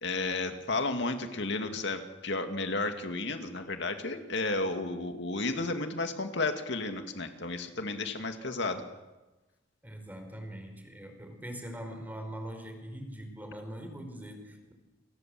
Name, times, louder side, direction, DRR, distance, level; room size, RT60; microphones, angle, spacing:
voice 1, 0.0-8.8, left 3 dB, 60° left, 6 dB, 2.5 m, -32 dB
voice 2, 9.8-14.7, equal, 10° right, 6 dB, 4.6 m, -42 dB
29.5 x 25.5 x 7.8 m, 1.1 s
head